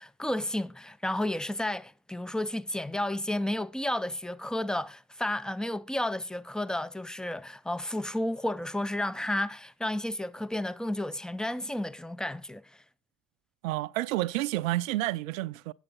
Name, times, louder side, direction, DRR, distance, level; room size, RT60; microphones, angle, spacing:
voice 1, 0.0-12.6, left 1 dB, ahead, 0.4 m, -32 dB
voice 2, 13.6-15.7, right 17 dB, 90° right, 0.5 m, -30 dB
9.0 x 8.1 x 5.2 m
hypercardioid pair, 70°, 39 cm